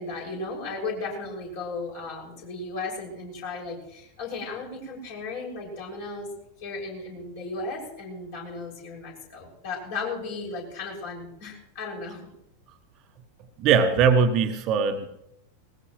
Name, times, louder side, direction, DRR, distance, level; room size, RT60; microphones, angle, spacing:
voice 1, 0.0-6.3 6.6-12.3, left 3 dB, 50° left, -2 dB, 6.6 m, -35 dB
voice 2, 13.6-15.1, right 6 dB, 35° right, 7 dB, 1.2 m, -20 dB
20.0 x 19.5 x 3.2 m, 0.79 s
figure-of-eight pair, 90°, 0 cm